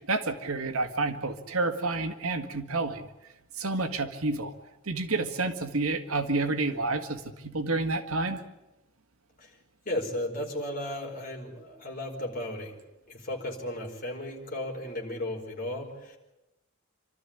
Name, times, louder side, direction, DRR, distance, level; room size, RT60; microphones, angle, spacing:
voice 1, 0.0-3.1 3.5-4.5 4.8-8.4, right 3 dB, 75° right, 7 dB, 1.9 m, -29 dB
voice 2, 9.8-12.8 13.1-16.2, left 1 dB, 40° left, 0 dB, 4.9 m, -35 dB
28.0 x 13.5 x 9.9 m, 0.97 s
head